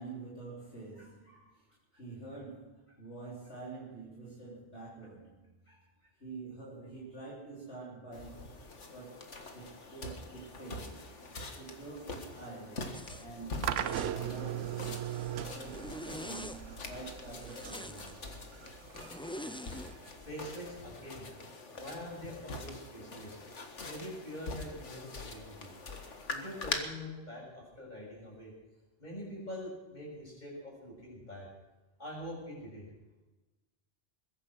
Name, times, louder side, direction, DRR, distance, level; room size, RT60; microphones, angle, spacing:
voice 1, 0.0-1.7 1.9-5.7 6.2-8.6 8.9-9.2 9.5-11.1 11.6-14.9 15.3-18.2, right 3 dB, 70° left, -6 dB, 4.0 m, -47 dB
voice 2, 1.0-1.4 5.7-5.8 20.2-21.3 21.8-23.4 23.8-25.7 26.3-28.5 29.0-31.5 32.0-32.9, left 1 dB, 40° left, -3 dB, 7.4 m, -44 dB
sound 1, 8.1-26.8, left 3 dB, 85° left, 2.0 m, -44 dB
Zipper (clothing), 12.9-13.3 13.7-14.2 14.6-15.3 15.7-16.6 17.3-18.1 18.9-19.9, left 1 dB, 10° left, 0.3 m, -45 dB
sound 2, 13.6-20.7, right 11 dB, 90° right, 1.0 m, -39 dB
21.5 x 10.5 x 6.3 m, 1.1 s
omnidirectional pair, 1.2 m